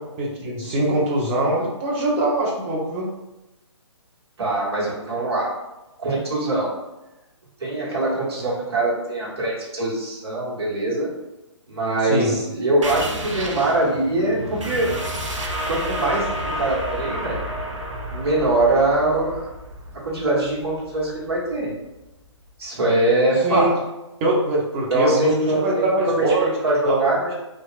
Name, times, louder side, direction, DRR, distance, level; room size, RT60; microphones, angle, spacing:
voice 1, 0.2-3.1 12.0-12.3 23.3-23.7 24.2-26.5 26.8-27.1, right 1 dB, 25° right, -4 dB, 0.7 m, -22 dB
voice 2, 4.4-5.5 6.0-6.7 7.6-11.1 11.7-14.9 15.7-16.3 16.5-17.4 18.1-19.4 20.0-21.7 22.6-23.6 24.9-27.3, right 2 dB, 60° right, -5 dB, 1.1 m, -22 dB
sound 1, 12.8-22.0, right 1 dB, 90° right, 0.5 m, -31 dB
2.9 x 2.3 x 2.4 m, 1.0 s
figure-of-eight pair, 135°, 16 cm